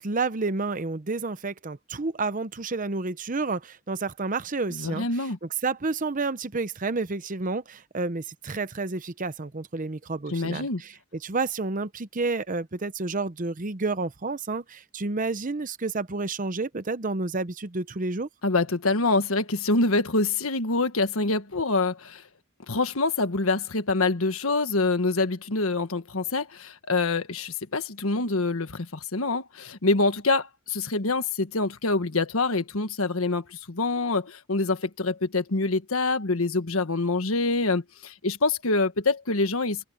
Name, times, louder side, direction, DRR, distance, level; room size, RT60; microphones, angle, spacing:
voice 1, 0.0-5.1 5.6-10.9 11.2-18.3, right 3 dB, 40° right, 0.8 m, -30 dB
voice 2, 4.7-5.4 10.3-10.8 18.4-22.2 22.7-39.8, left 3 dB, 80° left, 1.5 m, -26 dB
open air
head